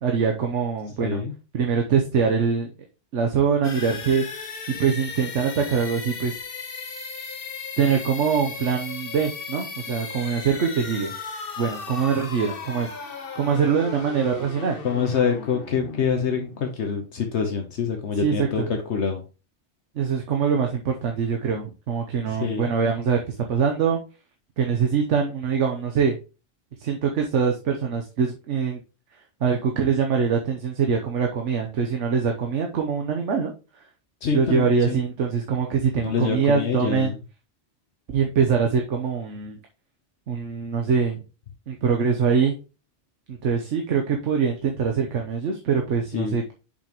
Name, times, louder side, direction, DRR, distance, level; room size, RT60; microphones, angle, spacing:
voice 1, 0.0-1.2 1.5-2.7 3.1-4.2 4.7-6.4 7.8-11.1 11.6-12.9 13.3-14.8 18.2-18.7 19.9-24.0 24.6-26.2 26.8-28.8 29.4-33.8 34.3-37.1 38.1-39.6 40.3-41.2 41.7-42.5 43.3-46.5, right 6 dB, 85° right, 2 dB, 1.2 m, -23 dB
voice 2, 1.0-1.3 14.8-19.2 22.4-22.7 34.2-34.9 36.0-37.2 46.1-46.5, left 6 dB, 70° left, 3 dB, 1.3 m, -26 dB
sound 1, 3.6-17.3, left 4 dB, 55° left, 1.3 m, -36 dB
6.9 x 5.3 x 3.0 m, 0.32 s
omnidirectional pair, 1.2 m